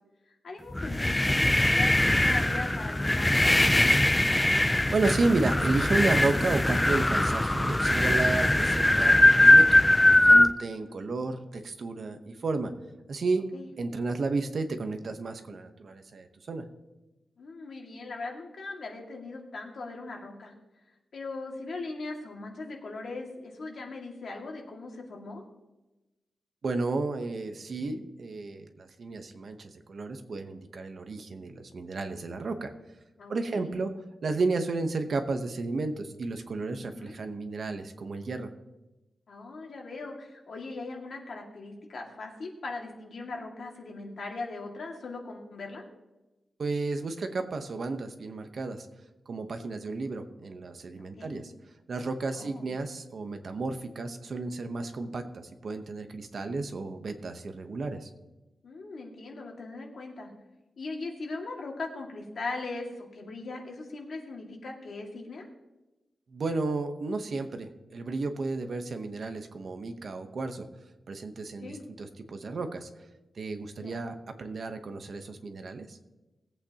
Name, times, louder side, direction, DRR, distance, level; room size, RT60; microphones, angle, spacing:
voice 1, 0.3-4.0 10.8-11.0 13.5-13.7 17.4-20.5 21.1-25.4 33.2-33.7 36.8-37.1 39.3-45.8 51.0-51.4 52.3-52.7 58.6-60.3 60.8-65.5 71.6-71.8 73.8-74.0, left 3 dB, 55° left, 0 dB, 2.0 m, -40 dB
sound 1, 0.7-10.5, left 1 dB, 10° left, 0.4 m, -21 dB
voice 2, 4.9-9.8 10.2-12.7 13.1-13.5 13.8-16.6 26.6-32.7 33.3-33.9 34.2-38.5 46.6-48.9 49.3-51.5 51.9-58.1 66.3-70.7 71.1-72.9 73.4-76.0, right 3 dB, 50° right, 7 dB, 0.9 m, -32 dB
19.5 x 8.5 x 2.9 m, 1.0 s
wide cardioid pair, 175°, 0 cm